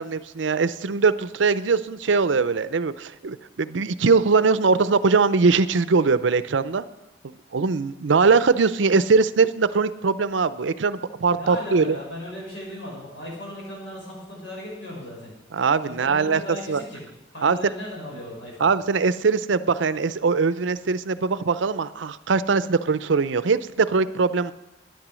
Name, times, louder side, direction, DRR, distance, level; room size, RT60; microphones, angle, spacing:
voice 1, 0.0-6.8 7.5-12.0 15.5-16.4 16.7-16.8 17.4-17.6 18.6-24.5, right 4 dB, 75° right, 14 dB, 0.6 m, -21 dB
voice 2, 11.3-15.3 15.8-17.1 17.3-18.7, left 1 dB, 80° left, -2 dB, 6.0 m, -37 dB
12.0 x 10.5 x 6.2 m, 0.97 s
head